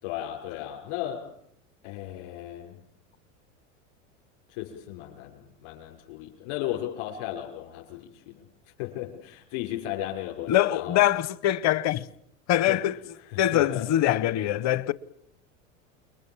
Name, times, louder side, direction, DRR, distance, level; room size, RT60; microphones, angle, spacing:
voice 1, 0.0-1.3 1.8-2.8 4.5-8.4 8.8-11.1 12.7-12.8 13.3-13.9, left 13 dB, 65° left, 6.1 m, -35 dB
voice 2, 10.5-12.1 12.5-13.0 13.4-14.9, left 13 dB, 45° left, 1.2 m, -23 dB
29.5 x 22.5 x 7.4 m
hypercardioid pair, 90°, 38 cm